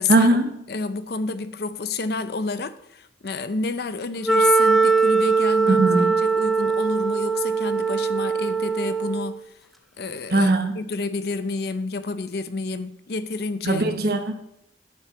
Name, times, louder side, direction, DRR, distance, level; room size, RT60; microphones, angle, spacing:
voice 1, 0.1-0.6 5.7-6.2 10.3-10.7 13.6-14.3, right 2 dB, 55° right, 7 dB, 1.1 m, -20 dB
voice 2, 0.7-5.8 6.2-9.4 10.0-13.9, left 3 dB, 60° left, 12 dB, 0.6 m, -29 dB
Wind instrument woodwind instrument, 4.2-9.4, right 5 dB, ahead, 0.5 m, -21 dB
8.4 x 5.7 x 7.0 m, 0.79 s
head